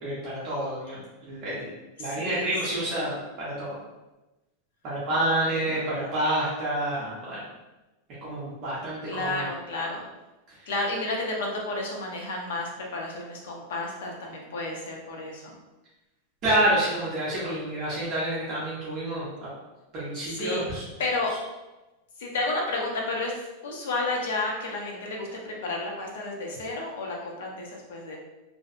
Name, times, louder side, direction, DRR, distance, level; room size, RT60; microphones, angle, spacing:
voice 1, 0.0-1.7 2.0-3.8 4.8-7.4 8.2-9.5 16.4-19.5 19.9-20.8, right 1 dB, 30° right, -8 dB, 0.6 m, -28 dB
voice 2, 2.0-2.9 5.1-5.8 9.1-10.0 10.7-15.6 20.2-20.6 21.0-21.4 22.2-23.3 23.6-28.2, left 2 dB, 75° left, -1 dB, 0.6 m, -31 dB
2.6 x 2.1 x 2.5 m, 1.0 s
supercardioid pair, 175°, 0 cm